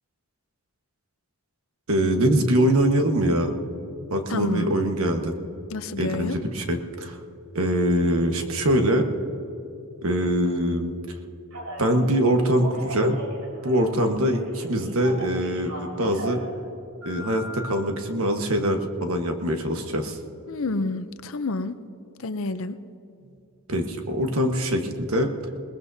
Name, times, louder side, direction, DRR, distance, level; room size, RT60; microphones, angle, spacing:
voice 1, 1.9-3.6 4.1-5.3 6.0-7.2 7.5-9.1 10.0-11.0 11.8-13.2 13.6-16.4 17.0-20.2 23.7-25.3, equal, 75° right, 4 dB, 1.4 m, -23 dB
voice 2, 4.3-4.9 5.7-6.4 20.5-21.8 22.2-22.8, left 2 dB, 65° left, 11 dB, 0.7 m, -29 dB
Telephone, 11.5-11.9 12.4-14.0 14.3-16.5 17.0-17.7, equal, 90° right, 4.5 m, -38 dB
21.5 x 19.5 x 2.8 m, 2.7 s
head